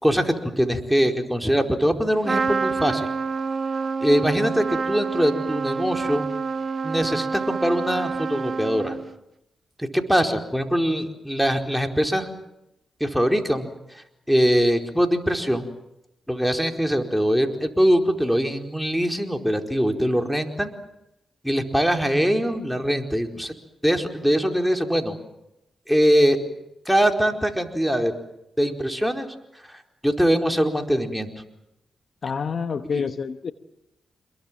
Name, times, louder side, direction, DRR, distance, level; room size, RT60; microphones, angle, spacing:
voice 1, 0.0-3.1 4.0-6.3 6.8-9.0 9.8-12.3 13.0-13.7 14.3-15.7 16.3-20.7 21.4-23.5 23.8-25.2 25.9-26.4 26.9-28.1 28.6-29.3 30.0-31.3 32.9-33.0, equal, ahead, 4 dB, 4.6 m, -22 dB
Trumpet, 2.2-9.2, right 5 dB, 45° right, 1.4 m, -27 dB
voice 2, 32.2-33.5, left 5 dB, 60° left, 10 dB, 1.3 m, -27 dB
27.5 x 22.5 x 7.7 m, 0.86 s
supercardioid pair, 55°, 0 cm